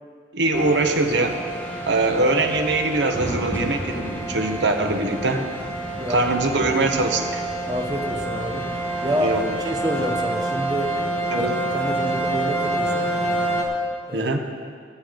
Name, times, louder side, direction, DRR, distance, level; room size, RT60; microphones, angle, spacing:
voice 1, 0.3-1.4 1.8-5.5 6.1-7.4 9.2-9.6 11.3-11.6 14.1-14.4, right 2 dB, 85° right, 5 dB, 1.1 m, -22 dB
sound 1, 0.5-13.6, right 1 dB, 10° left, 1.5 m, -27 dB
voice 2, 5.9-6.3 7.7-8.7 9.0-11.0 11.3-13.1 14.1-14.3, equal, 25° right, 3 dB, 0.9 m, -28 dB
14.0 x 8.4 x 5.1 m, 2.1 s
head